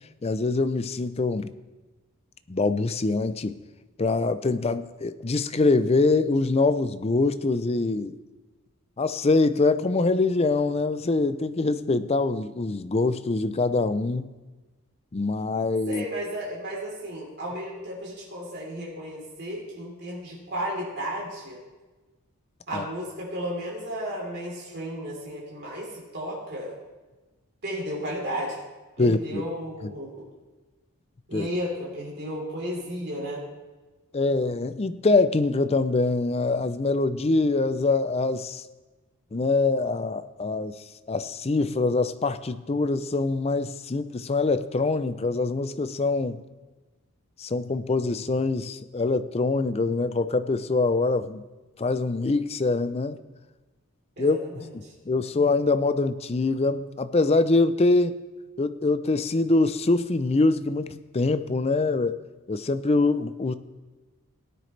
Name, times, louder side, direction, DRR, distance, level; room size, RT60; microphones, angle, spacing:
voice 1, 0.2-1.5 2.5-3.6 4.0-8.2 9.0-14.3 15.1-16.0 22.7-22.8 29.0-29.4 29.8-29.9 31.3-31.5 34.1-38.6 39.3-46.4 47.4-51.4 51.8-53.2 54.2-54.4 55.1-58.1 58.6-62.2 62.5-63.5, left 3 dB, 25° left, 12 dB, 0.4 m, -24 dB
voice 2, 15.9-21.6 22.7-26.7 27.6-28.6 29.0-30.3 31.3-33.4 54.2-54.9, equal, 50° right, -5 dB, 3.6 m, -33 dB
18.0 x 9.5 x 3.3 m, 1.2 s
head